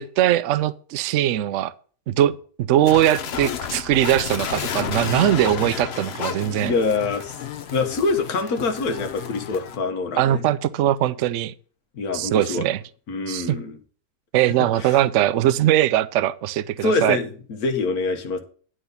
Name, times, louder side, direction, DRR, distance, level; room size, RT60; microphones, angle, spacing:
voice 1, 0.0-1.7 2.1-2.3 2.6-6.7 10.2-11.5 12.1-12.8 13.3-13.6 14.3-17.2, right 12 dB, 65° right, 0.8 m, -21 dB
sound 1, 2.8-9.8, left 8 dB, 55° left, 0.8 m, -31 dB
voice 2, 6.6-7.4 7.7-10.4 11.9-12.6 13.1-13.8 14.8-14.9 16.8-18.4, left 3 dB, 75° left, 1.7 m, -25 dB
11.0 x 4.1 x 6.7 m
omnidirectional pair, 1.6 m